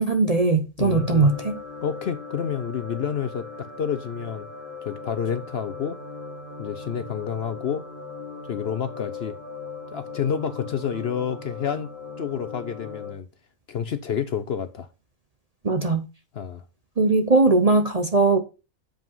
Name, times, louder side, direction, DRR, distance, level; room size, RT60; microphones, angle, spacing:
voice 1, 0.0-1.6 15.6-16.0 17.0-18.4, right 3 dB, 35° right, 0.7 m, -20 dB
voice 2, 0.8-1.3 1.8-4.5 4.8-6.0 6.6-7.9 8.5-9.3 9.9-11.9 12.2-13.3 13.7-14.9 16.3-16.6, left 8 dB, 55° left, 0.8 m, -29 dB
sound 1, 0.9-13.1, left 4 dB, 35° left, 1.6 m, -39 dB
7.5 x 5.3 x 5.4 m
omnidirectional pair, 1.5 m